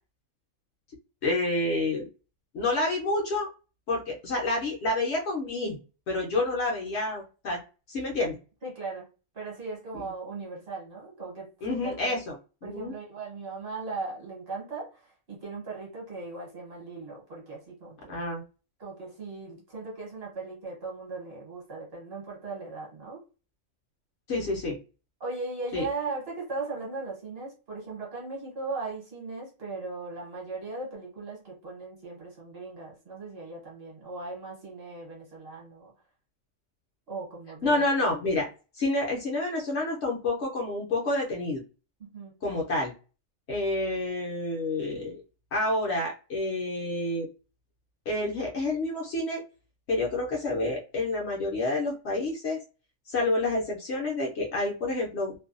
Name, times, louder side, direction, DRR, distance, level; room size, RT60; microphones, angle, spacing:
voice 1, 1.2-2.1 2.5-3.5 3.9-5.8 6.1-7.6 7.9-8.4 11.6-12.4 12.6-12.9 18.1-18.4 24.3-24.8 25.7-25.9 37.6-38.5 38.8-41.6 42.4-42.9 43.5-45.2 45.5-47.3 48.1-49.4 49.9-52.6 53.1-55.3, left 2 dB, 60° left, -1 dB, 0.8 m, -28 dB
voice 2, 8.6-9.1 9.3-12.2 12.6-18.2 18.8-23.2 25.2-35.9 37.1-37.8 42.0-42.3, right 3 dB, 50° right, -3 dB, 1.1 m, -38 dB
2.6 x 2.2 x 2.4 m, 0.33 s
omnidirectional pair, 1.4 m